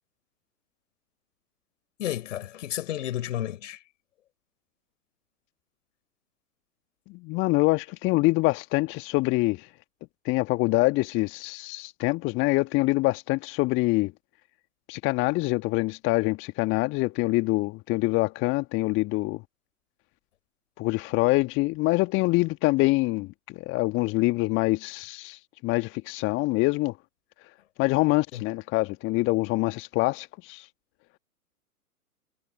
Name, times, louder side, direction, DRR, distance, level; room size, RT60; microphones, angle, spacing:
voice 1, 2.0-3.8 28.3-28.4, left 12 dB, 50° left, 4.0 m, -32 dB
voice 2, 7.1-9.7 10.2-14.1 14.9-19.4 20.8-26.9 27.8-30.7, left 22 dB, 25° left, 1.5 m, -25 dB
figure-of-eight pair, 110°, 46 cm